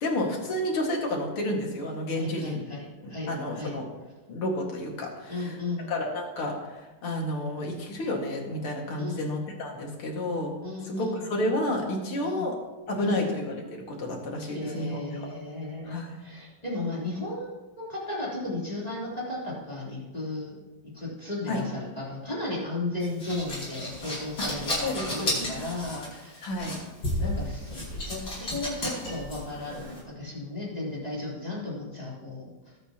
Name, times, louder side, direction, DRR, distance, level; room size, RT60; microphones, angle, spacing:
voice 1, 0.0-2.6 3.0-3.9 4.3-5.6 5.9-10.5 10.8-12.5 12.9-15.0 15.9-16.2 21.5-21.6 24.8-25.4 26.4-26.8, left 1 dB, 90° left, 0 dB, 2.9 m, -30 dB
voice 2, 2.1-3.8 5.3-5.9 9.0-9.4 10.6-11.1 12.2-12.5 13.0-13.3 14.5-20.6 20.8-26.5 27.1-32.5, left 2 dB, 15° left, -7 dB, 3.7 m, -35 dB
sound 1, 23.0-30.0, left 1 dB, 60° left, 5.5 m, -33 dB
21.0 x 8.1 x 3.0 m, 1.1 s
omnidirectional pair, 2.3 m